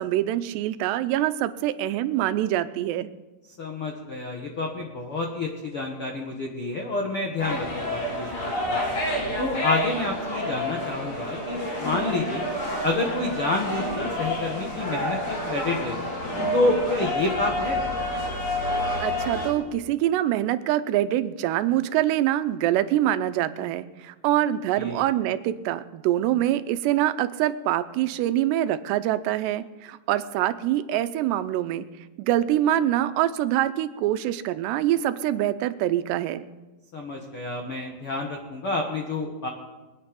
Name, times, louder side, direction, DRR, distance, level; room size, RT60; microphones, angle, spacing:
voice 1, 0.0-3.1 19.0-31.9 32.2-36.5, right 13 dB, 85° right, 12 dB, 2.8 m, -25 dB
voice 2, 3.6-8.8 9.4-12.5 12.8-16.1 16.5-17.8 24.8-25.0 36.9-39.5, left 2 dB, 70° left, 1 dB, 1.3 m, -28 dB
sound 1, 7.4-19.5, left 1 dB, 50° left, 4.9 m, -29 dB
23.0 x 9.5 x 5.3 m, 1.2 s
omnidirectional pair, 4.8 m